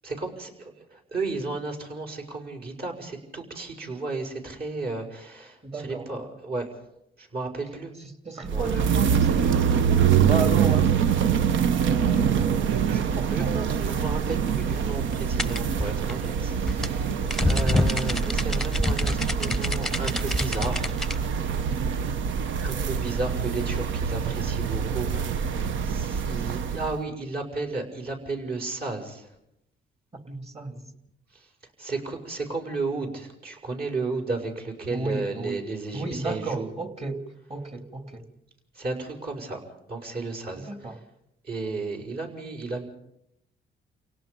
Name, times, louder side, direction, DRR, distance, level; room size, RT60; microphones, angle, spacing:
voice 1, 0.0-6.7 7.2-7.9 8.5-8.7 12.9-17.2 17.4-20.9 22.6-25.5 25.8-29.3 31.3-31.4 31.8-36.7 38.7-39.6 39.9-41.0 41.4-42.9, right 3 dB, 50° right, 1 dB, 6.3 m, -33 dB
voice 2, 5.6-6.1 8.2-11.4 11.8-12.8 13.4-13.6 22.0-22.4 30.1-30.9 34.9-35.6 35.9-38.3 40.6-41.0, right 3 dB, 30° right, 6 dB, 3.0 m, -34 dB
sound 1, 8.4-27.0, right 7 dB, 70° right, 0.9 m, -25 dB
sound 2, 15.4-21.2, left 2 dB, ahead, 0.9 m, -27 dB
29.5 x 18.0 x 5.4 m, 0.81 s
cardioid pair, 90°, 20 cm